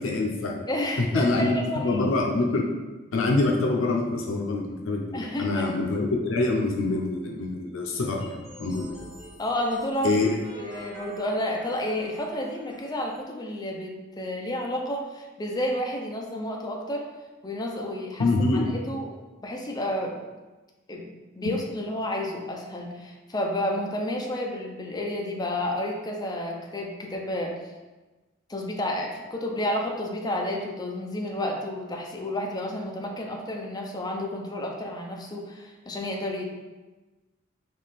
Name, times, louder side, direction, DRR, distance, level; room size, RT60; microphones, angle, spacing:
voice 1, 0.0-0.6 1.0-1.5 1.8-2.6 3.1-9.0 10.0-10.3 18.2-18.7, left 2 dB, 80° left, 0 dB, 0.6 m, -25 dB
voice 2, 0.7-2.0 5.1-5.7 9.4-10.3 10.5-17.1 17.4-19.1 19.4-20.2 20.9-27.5 28.5-36.4, left 1 dB, 20° left, 0 dB, 0.5 m, -31 dB
sound 1, 8.2-13.2, equal, 5° right, 1.1 m, -47 dB
3.6 x 3.1 x 4.0 m, 1.2 s
head